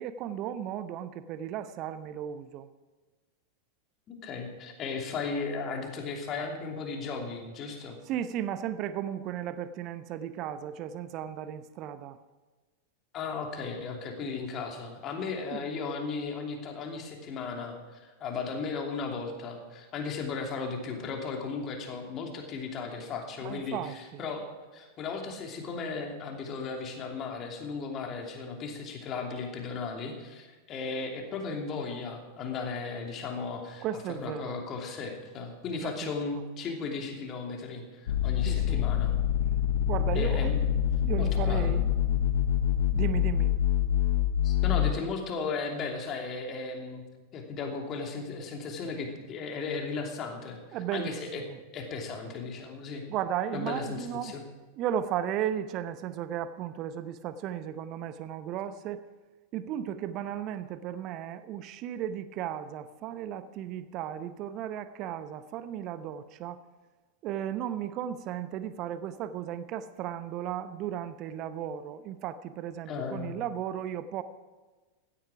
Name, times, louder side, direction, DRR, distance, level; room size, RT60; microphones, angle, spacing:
voice 1, 0.0-2.7 8.1-12.2 15.5-15.7 23.4-24.2 33.8-34.6 35.8-36.1 38.4-38.9 39.9-40.5 41.0-41.9 42.9-43.5 50.7-51.6 53.1-54.3 54.8-59.0 59.5-66.6 67.2-74.2, right 10 dB, 40° right, 13 dB, 0.8 m, -35 dB
voice 2, 4.1-8.0 13.1-39.1 40.1-40.5 41.2-41.8 44.4-47.0 47.3-50.6 50.9-51.4 51.7-53.0 53.5-54.4 72.9-73.4, left 4 dB, 30° left, 2 dB, 2.9 m, -36 dB
sound 1, 38.1-44.9, left 10 dB, 60° left, 1.0 m, -26 dB
16.0 x 12.5 x 4.9 m, 1.3 s
figure-of-eight pair, 90°, 0 cm